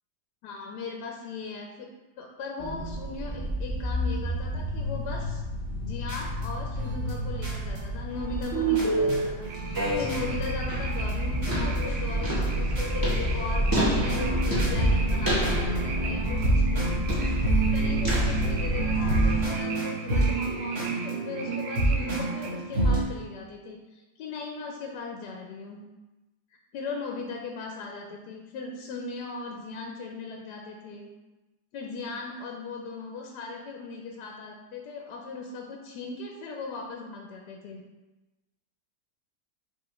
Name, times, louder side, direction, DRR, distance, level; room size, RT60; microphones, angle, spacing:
voice 1, 0.4-1.9 2.2-5.4 5.8-16.9 17.7-25.8 26.7-31.1 31.7-37.8, left 3 dB, 75° left, 1 dB, 1.1 m, -38 dB
sound 1, 2.6-19.4, equal, 15° right, 0.7 m, -28 dB
sound 2, 6.1-11.1 11.4-11.8 12.1-23.0, right 2 dB, 55° right, 2.0 m, -30 dB
sound 3, 9.4-22.5, right 3 dB, 75° right, 1.3 m, -40 dB
6.1 x 2.8 x 3.0 m, 1.1 s
omnidirectional pair, 2.0 m